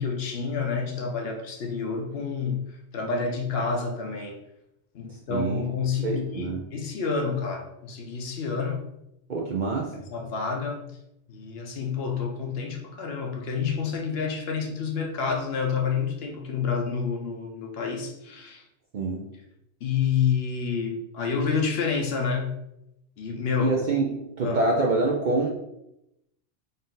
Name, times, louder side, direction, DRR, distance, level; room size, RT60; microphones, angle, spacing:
voice 1, 0.0-4.4 4.9-8.9 9.9-10.9 11.3-18.6 19.8-22.6 23.2-23.8 24.4-24.6, left 5 dB, 65° left, 2 dB, 0.8 m, -29 dB
voice 2, 5.3-5.7 6.0-6.7 9.3-10.0 18.9-19.3 23.6-25.5, right 3 dB, 55° right, -1 dB, 0.5 m, -26 dB
4.0 x 2.6 x 3.8 m, 0.84 s
omnidirectional pair, 1.2 m